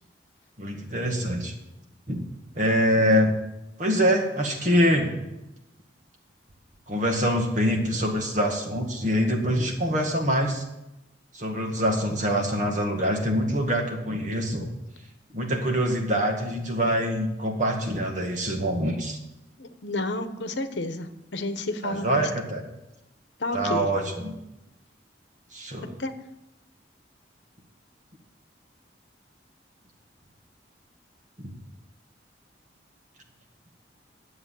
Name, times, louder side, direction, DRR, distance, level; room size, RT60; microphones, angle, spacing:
voice 1, 0.6-1.5 2.1-2.3 2.5-3.4 3.8-5.1 6.9-10.6 11.3-14.7 15.3-19.2 21.8-22.6 23.5-24.3 25.5-25.9 31.4-31.5, equal, 40° right, 2 dB, 2.0 m, -25 dB
voice 2, 19.6-22.3 23.4-23.9 26.0-26.1, left 2 dB, 75° left, 9 dB, 1.0 m, -31 dB
11.0 x 7.8 x 7.6 m, 0.94 s
head